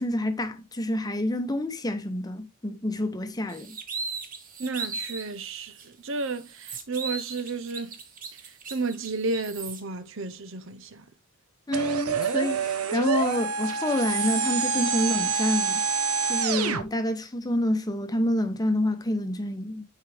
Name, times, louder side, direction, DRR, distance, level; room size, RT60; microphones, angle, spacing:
voice 1, 0.0-3.8 11.7-15.8 16.3-19.8, left 1 dB, 15° left, 0.9 m, -28 dB
sound 1, 3.5-5.3 5.8-5.9 6.2-9.8, right 4 dB, 40° right, 1.4 m, -37 dB
voice 2, 4.6-8.0 8.3-11.0, right 3 dB, 60° right, 0.8 m, -32 dB
sound 2, 11.7-16.8, right 5 dB, 80° right, 1.0 m, -26 dB
9.6 x 4.8 x 3.4 m
head